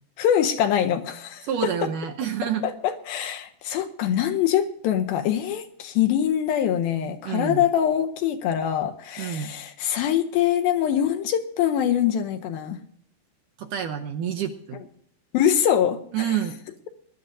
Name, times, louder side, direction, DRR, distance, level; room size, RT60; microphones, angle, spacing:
voice 1, 0.2-1.7 2.6-12.8 15.3-16.4, left 10 dB, 80° left, 6 dB, 2.4 m, -24 dB
voice 2, 1.4-2.6 7.2-7.7 9.2-9.5 13.6-14.8 16.1-16.6, right 9 dB, 75° right, 5 dB, 2.0 m, -28 dB
20.5 x 12.0 x 2.6 m, 0.65 s
omnidirectional pair, 4.5 m